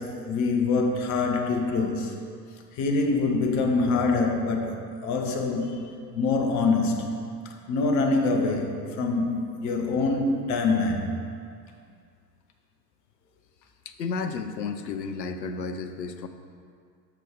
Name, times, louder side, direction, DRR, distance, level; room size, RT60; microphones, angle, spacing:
voice 1, 0.0-2.1 2.7-11.2, left 3 dB, 35° left, 3 dB, 0.8 m, -25 dB
voice 2, 13.9-16.3, left 4 dB, 85° left, 9 dB, 0.5 m, -32 dB
6.2 x 4.9 x 4.6 m, 2.2 s
figure-of-eight pair, 80°, 50 cm